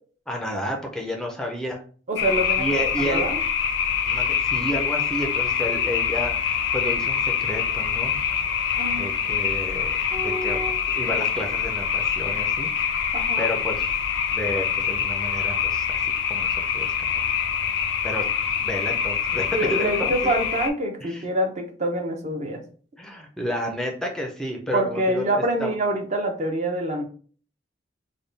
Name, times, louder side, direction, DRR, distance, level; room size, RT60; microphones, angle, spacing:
voice 1, 0.3-1.8 2.6-3.3 4.1-8.2 8.9-9.9 10.2-10.6 10.9-13.9 14.3-17.3 18.0-18.2 18.6-20.1 21.0-21.3 23.0-25.7, equal, 5° left, 1 dB, 0.5 m, -31 dB
voice 2, 2.1-3.4 8.7-9.1 10.1-10.8 13.1-13.4 19.5-22.6 24.7-27.0, right 1 dB, 40° right, 3 dB, 0.6 m, -26 dB
sound 1, 2.2-20.7, left 7 dB, 75° left, 0.5 m, -25 dB
3.5 x 2.2 x 3.9 m, 0.43 s
head